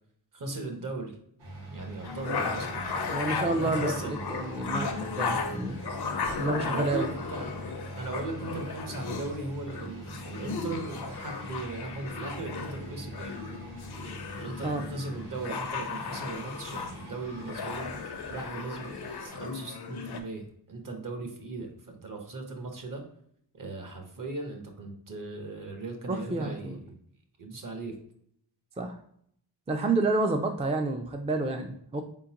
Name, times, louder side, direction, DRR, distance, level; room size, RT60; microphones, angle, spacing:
voice 1, 0.3-1.2 1.7-3.2 3.6-4.3 6.6-7.6 8.0-13.4 14.3-17.9 18.3-18.9 19.2-23.0 23.5-27.0 27.4-27.9, right 3 dB, 55° right, 4 dB, 1.0 m, -38 dB
sound 1, 1.4-19.3, right 1 dB, 85° right, 1.6 m, -44 dB
sound 2, 2.0-20.2, left 5 dB, 75° left, 0.6 m, -36 dB
voice 2, 2.3-2.6 3.1-5.8 6.4-7.1 14.6-14.8 26.1-26.8 28.8-29.0 29.7-32.0, right 2 dB, 20° right, 4 dB, 0.3 m, -30 dB
4.3 x 3.8 x 2.8 m, 0.67 s
wide cardioid pair, 115°, 39 cm